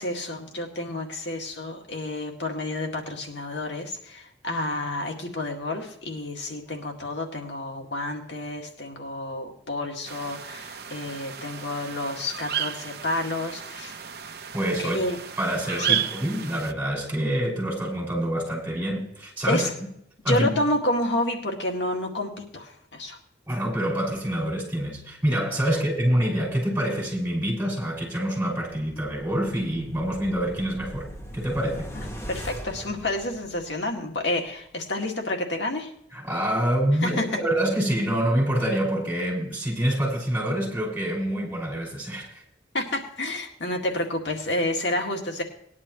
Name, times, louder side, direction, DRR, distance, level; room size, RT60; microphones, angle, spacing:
voice 1, 0.0-13.9 14.8-15.2 15.8-16.0 19.5-19.7 20.3-23.2 31.9-35.9 37.0-37.4 42.7-45.4, left 1 dB, 80° left, 2.1 m, -29 dB
sound 1, 10.1-16.7, right 9 dB, 60° right, 0.8 m, -33 dB
voice 2, 14.5-15.0 15.4-19.7 20.2-20.5 23.5-31.1 31.3-31.9 36.1-42.4, right 1 dB, 10° right, 5.8 m, -26 dB
sound 2, 28.9-33.9 34.3-34.4, equal, 15° left, 1.7 m, -40 dB
19.5 x 11.0 x 3.1 m
head